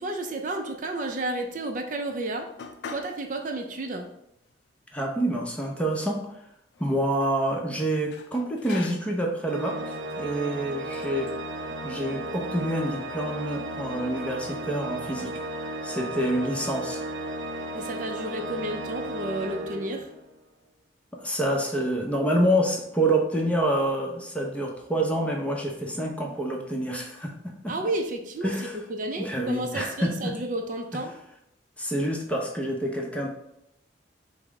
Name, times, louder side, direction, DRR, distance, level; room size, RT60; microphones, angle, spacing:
voice 1, 0.0-2.5 2.9-4.1 17.7-20.1 27.7-28.5 28.9-31.1, right 2 dB, 45° right, 4 dB, 0.4 m, -31 dB
sound 1, 2.6-3.2 3.6-3.7 4.5-4.6 4.9-5.8 6.7-7.4 8.1-9.3 10.0-10.2 10.9-11.4, left 5 dB, 70° left, 0.4 m, -43 dB
voice 2, 4.9-6.2 6.8-11.3 11.8-17.0 21.1-27.7 28.4-28.8 29.2-30.3 30.9-31.0 31.8-33.3, right 1 dB, 5° left, 0 dB, 0.7 m, -27 dB
Organ, 9.5-20.4, right 1 dB, 90° right, 0.6 m, -35 dB
5.2 x 2.1 x 4.7 m, 0.79 s
head